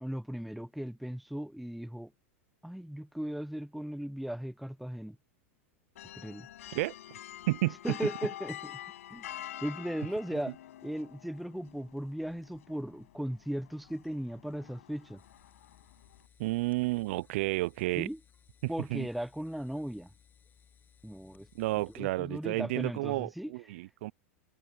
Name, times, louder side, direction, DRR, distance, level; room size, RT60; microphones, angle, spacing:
voice 1, 0.0-2.1 2.6-5.2 6.1-6.5 7.8-8.7 9.1-9.3 9.6-10.5 10.8-15.2 18.0-18.2 18.7-20.1 21.0-21.5 22.0-23.5, equal, ahead, 0.5 m, -37 dB
sound 1, 6.0-16.3, left 13 dB, 75° left, 6.0 m, -47 dB
voice 2, 7.5-7.8 16.4-18.1 18.6-19.1 21.5-24.1, right 20 dB, 60° right, 0.4 m, -31 dB
sound 2, 15.2-22.0, left 8 dB, 25° left, 7.5 m, -63 dB
hypercardioid pair, 120°, 8 cm